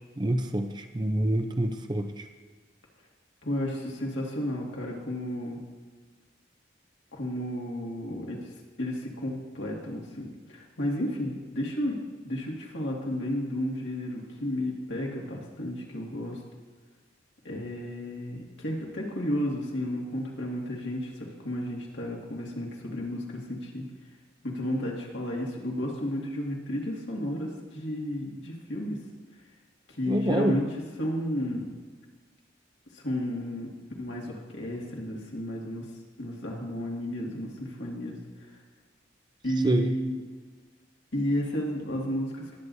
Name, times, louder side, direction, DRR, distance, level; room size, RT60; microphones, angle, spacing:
voice 1, 0.2-2.3 30.1-30.6 39.6-39.9, right 1 dB, 25° right, 6 dB, 0.6 m, -27 dB
voice 2, 3.4-5.6 7.1-8.4 8.8-12.0 12.2-16.4 17.4-23.9 24.4-29.0 29.9-30.7 31.0-31.7 32.9-33.7 34.0-35.9 36.2-38.2 39.4-40.2 41.1-42.6, equal, 80° left, -2 dB, 2.1 m, -32 dB
20.0 x 7.9 x 2.7 m, 1.4 s
head